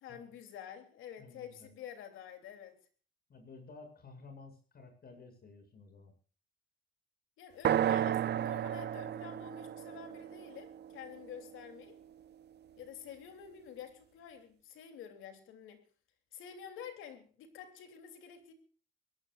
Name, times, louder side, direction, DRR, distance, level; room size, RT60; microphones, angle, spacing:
voice 1, 0.0-2.7 7.4-12.0 12.8-15.8 16.3-18.5, left 8 dB, 90° left, 7 dB, 3.3 m, -49 dB
voice 2, 1.2-1.7 3.3-6.1, left 3 dB, 50° left, 6 dB, 7.8 m, -53 dB
sound 1, 7.6-11.6, right 10 dB, 55° right, 0.7 m, -33 dB
23.5 x 17.5 x 2.6 m, 0.39 s
cardioid pair, 90°, 20 cm